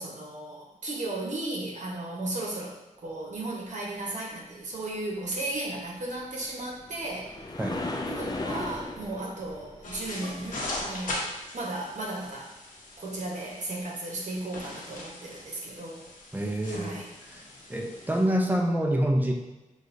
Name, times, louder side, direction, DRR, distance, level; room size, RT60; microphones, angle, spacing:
voice 1, 0.0-2.8 3.0-7.3 8.1-12.6 13.0-16.1 16.6-17.1, right 2 dB, 65° right, -2 dB, 1.1 m, -35 dB
sound 1, 6.2-11.5 15.3-15.5 16.1-16.2, left 2 dB, 30° left, 0.5 m, -37 dB
voice 2, 7.6-7.9 16.3-17.0 17.3-19.3, right 1 dB, 15° right, 1 dB, 0.6 m, -27 dB
sound 2, 9.8-18.2, left 1 dB, 85° left, 1.0 m, -40 dB
6.3 x 2.5 x 2.6 m, 1.1 s
cardioid pair, 70°, 13 cm